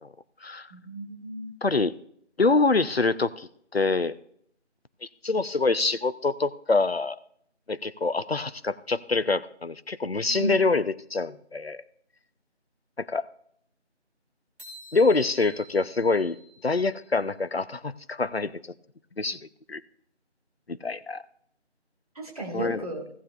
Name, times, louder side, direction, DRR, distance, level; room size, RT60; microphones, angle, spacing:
voice 1, 0.4-1.5 10.3-10.5 22.2-23.1, right 1 dB, 30° right, 1 dB, 2.1 m, -35 dB
voice 2, 1.6-1.9 2.4-4.1 5.2-7.2 7.7-11.8 13.0-13.3 14.9-16.4 16.6-18.7 19.2-19.4 19.7-19.8 20.7-21.2 22.5-22.8, left 3 dB, 60° left, 14 dB, 0.8 m, -25 dB
sound 1, 14.6-17.2, equal, 65° right, 4.0 m, -49 dB
17.0 x 7.6 x 2.5 m, 0.66 s
figure-of-eight pair, 170°, 35 cm